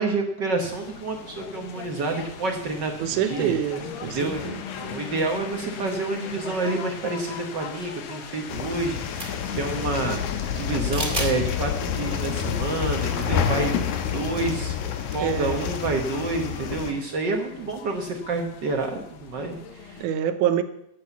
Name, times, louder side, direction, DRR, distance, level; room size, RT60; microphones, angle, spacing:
voice 1, 0.0-2.9 3.3-3.5 4.0-4.5 4.8-14.8 15.1-20.0, right 3 dB, 60° right, 1.1 m, -28 dB
sound 1, 0.6-20.1, left 6 dB, 65° left, 1.2 m, -39 dB
voice 2, 3.0-4.6 15.2-15.7 20.0-20.6, right 10 dB, 80° right, 2.3 m, -26 dB
sound 2, 8.5-16.9, left 8 dB, 80° left, 2.4 m, -28 dB
sound 3, 9.0-9.5 10.9-11.4 11.9-12.0 13.1-13.3 13.5-13.6 14.9-15.2, right 2 dB, 20° right, 2.0 m, -31 dB
11.0 x 8.3 x 7.1 m
omnidirectional pair, 3.5 m